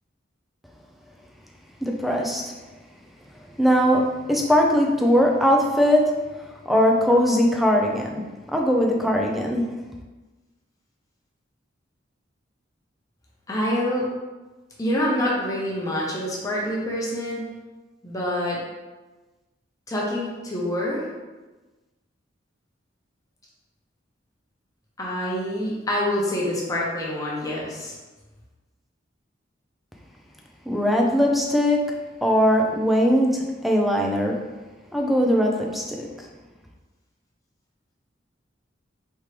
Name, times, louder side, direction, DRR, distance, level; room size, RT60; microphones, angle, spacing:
voice 1, 1.8-2.5 3.6-6.2 6.7-8.2 8.5-9.8 30.7-32.0 32.2-34.4 34.9-36.1, equal, ahead, 0 dB, 0.5 m, -20 dB
voice 2, 13.5-14.0 14.8-17.5 18.0-18.6 19.9-21.1 25.0-27.9, left 1 dB, 20° left, -4 dB, 1.0 m, -26 dB
4.5 x 3.6 x 3.3 m, 1.2 s
head